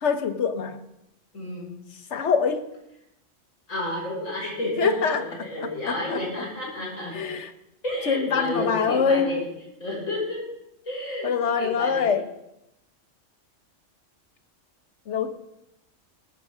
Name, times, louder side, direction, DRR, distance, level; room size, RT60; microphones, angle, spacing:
voice 1, 0.0-0.8 1.9-2.7 4.8-6.5 7.1-7.5 8.1-9.4 11.2-12.3 15.1-15.3, left 6 dB, 65° left, 9 dB, 1.3 m, -25 dB
voice 2, 1.3-1.8 3.7-7.2 7.8-9.4 9.8-10.4 10.9-12.1, left 1 dB, 85° left, -4 dB, 6.1 m, -30 dB
19.0 x 14.5 x 3.6 m, 0.85 s
omnidirectional pair, 1.3 m